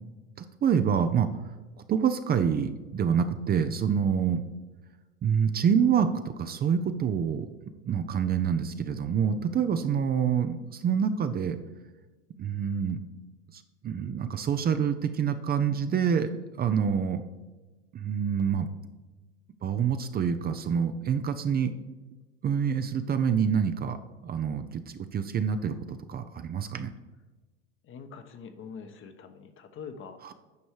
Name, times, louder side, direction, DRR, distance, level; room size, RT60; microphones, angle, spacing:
voice 1, 0.4-1.3 1.9-4.4 5.2-7.5 7.8-11.6 12.4-13.0 13.5-16.3 16.6-17.2 17.9-18.7 19.6-21.7 22.4-24.0 24.2-26.9 30.2-30.3, right 7 dB, 30° right, 9 dB, 0.6 m, -27 dB
voice 2, 27.8-30.2, left 6 dB, 40° left, 7 dB, 1.1 m, -44 dB
9.5 x 5.4 x 4.8 m, 1.2 s
hypercardioid pair, 85°, 33 cm